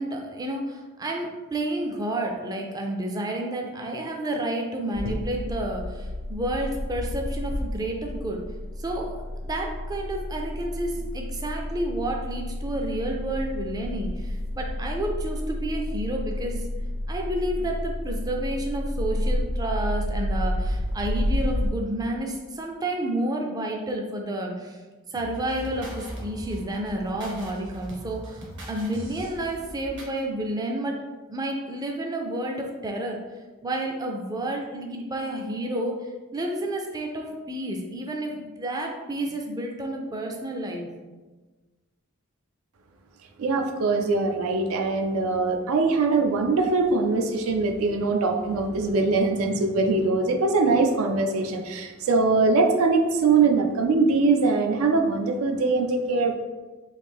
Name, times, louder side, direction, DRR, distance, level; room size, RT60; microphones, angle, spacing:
voice 1, 0.0-8.4 8.8-9.2 9.4-16.7 17.1-24.8 25.1-31.0 31.3-33.2 33.6-36.0 36.3-40.9, right 1 dB, 20° right, 1 dB, 0.3 m, -30 dB
sound 1, 4.9-21.7, left 1 dB, 65° left, 0.5 m, -30 dB
sound 2, 25.1-30.2, equal, 60° right, 0.8 m, -40 dB
voice 2, 43.4-56.3, right 3 dB, 85° right, 5 dB, 0.4 m, -22 dB
3.2 x 2.6 x 3.4 m, 1.3 s
head